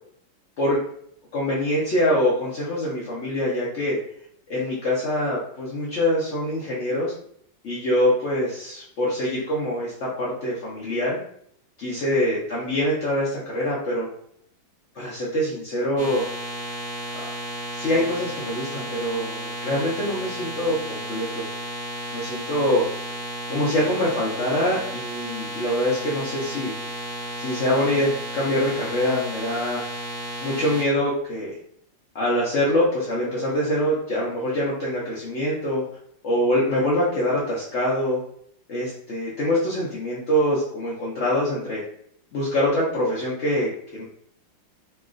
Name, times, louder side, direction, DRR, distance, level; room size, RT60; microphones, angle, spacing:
voice 1, 1.3-4.0 4.5-7.1 7.6-11.2 11.8-14.1 15.0-16.3 17.8-21.5 22.1-22.8 23.5-26.7 27.4-29.9 30.4-31.6 32.1-35.8 36.2-38.2 38.7-41.8 42.3-44.0, left 1 dB, 80° left, -6 dB, 0.6 m, -24 dB
sound 1, 16.0-30.8, equal, 5° right, 1.0 m, -33 dB
3.2 x 2.9 x 2.4 m, 0.66 s
omnidirectional pair, 2.1 m